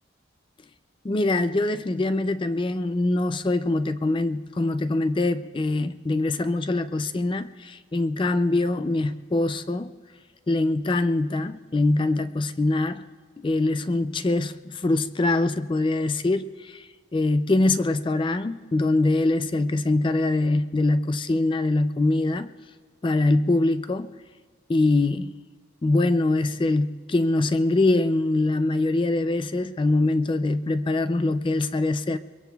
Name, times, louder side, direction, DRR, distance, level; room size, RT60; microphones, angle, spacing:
voice 1, 1.0-9.9 10.5-13.0 13.4-16.9 17.1-22.5 23.0-24.1 24.7-25.3 25.8-32.2, left 2 dB, 25° left, 0.3 m, -23 dB
23.0 x 22.5 x 2.3 m
head